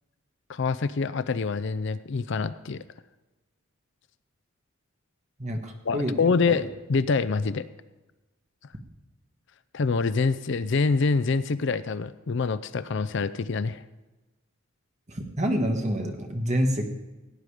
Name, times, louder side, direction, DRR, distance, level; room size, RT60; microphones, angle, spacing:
voice 1, 0.5-2.8 5.9-7.7 9.7-13.8, left 4 dB, 55° left, 15 dB, 0.5 m, -26 dB
voice 2, 5.4-6.6 15.1-16.8, equal, 30° right, 3 dB, 1.5 m, -27 dB
17.0 x 9.3 x 4.9 m, 1.1 s
head